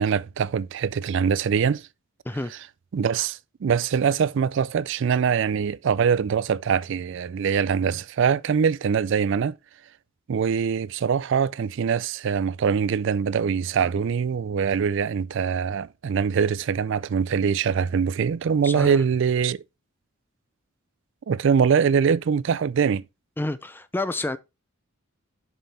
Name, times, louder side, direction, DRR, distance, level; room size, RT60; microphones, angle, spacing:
voice 1, 0.0-1.9 2.9-9.6 10.3-19.6 21.3-23.0, right 6 dB, 60° right, 0.3 m, -23 dB
voice 2, 18.6-19.0 23.4-24.4, left 2 dB, 10° left, 0.4 m, -29 dB
7.4 x 5.5 x 4.0 m
head